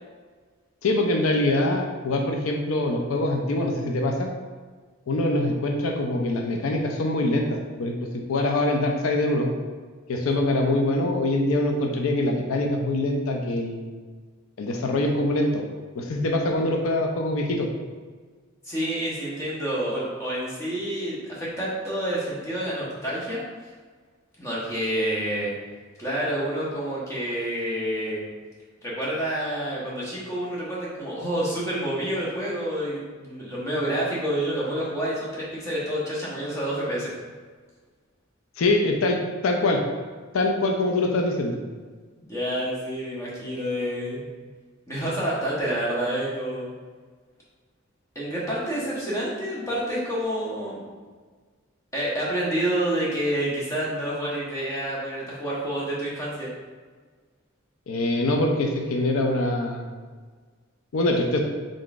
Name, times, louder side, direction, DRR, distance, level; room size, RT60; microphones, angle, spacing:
voice 1, 0.8-4.3 5.1-8.0 8.3-9.5 10.1-13.8 14.6-15.6 16.0-17.7 38.6-39.2 39.4-39.8 40.3-41.6 57.9-59.8 60.9-61.4, left 2 dB, 85° left, 2 dB, 0.4 m, -24 dB
voice 2, 18.6-23.4 24.4-25.5 26.0-28.3 28.8-37.1 42.1-44.3 44.9-46.7 48.1-50.9 51.9-56.5, right 1 dB, 15° left, -7 dB, 0.9 m, -28 dB
3.7 x 3.7 x 2.4 m, 1.5 s
head